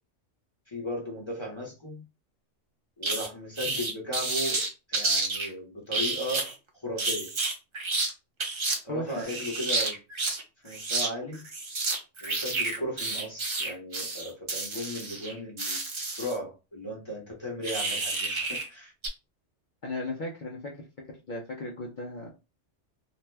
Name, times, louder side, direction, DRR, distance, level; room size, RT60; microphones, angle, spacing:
voice 1, 0.7-2.0 3.0-6.4 6.7-7.3 8.8-10.0 10.6-11.5 12.2-15.8 16.2-18.9, left 1 dB, 25° left, -3 dB, 0.8 m, -36 dB
sound 1, 3.0-3.3 3.6-5.5 5.9-6.5 7.0-8.1 8.4-8.8 9.1-10.4 10.7-11.1 11.3-16.4 17.6-18.7 19.0-19.1, right 3 dB, 40° right, 0.4 m, -30 dB
voice 2, 8.9-9.2 19.8-22.3, left 2 dB, 55° left, -1 dB, 0.6 m, -36 dB
2.5 x 2.1 x 3.2 m, 0.29 s
omnidirectional pair, 1.2 m